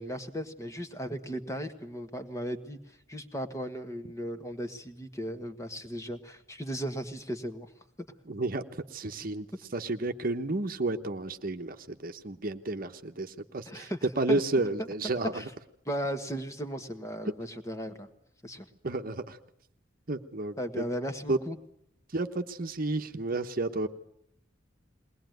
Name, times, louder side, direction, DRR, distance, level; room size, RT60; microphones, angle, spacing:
voice 1, 0.0-2.8 3.1-7.7 13.7-14.0 14.3-14.4 15.3-15.4 15.9-18.1 18.4-18.7 20.6-21.6, equal, 15° left, 8 dB, 1.5 m, -36 dB
voice 2, 8.3-9.5 9.7-15.4 18.8-19.4 20.1-20.9 21.3-21.4 22.1-23.9, right 2 dB, 50° right, 7 dB, 1.0 m, -31 dB
21.5 x 19.5 x 9.3 m, 0.71 s
head